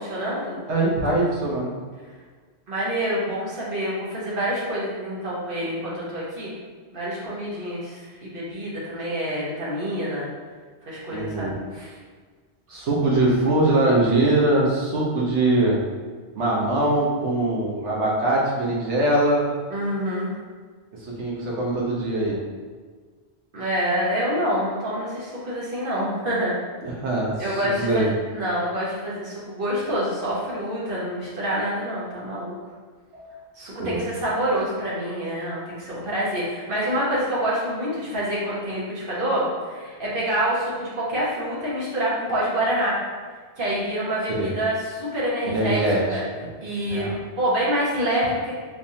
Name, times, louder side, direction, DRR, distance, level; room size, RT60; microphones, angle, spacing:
voice 1, 0.0-0.6 2.7-6.5 6.9-10.3 10.8-11.9 19.7-20.3 23.5-26.5 27.4-32.6 33.6-43.0 43.6-45.8 46.1-46.2 46.6-48.5, equal, 50° right, -7 dB, 1.2 m, -27 dB
voice 2, 0.7-1.7 11.1-11.6 12.7-15.8 16.4-19.5 21.0-22.4 26.8-28.1 33.1-33.4 33.8-34.0 44.4-44.5 45.5-46.2 46.8-47.1, right 2 dB, 80° right, -4 dB, 1.2 m, -22 dB
3.3 x 3.3 x 2.7 m, 1.5 s
omnidirectional pair, 1.2 m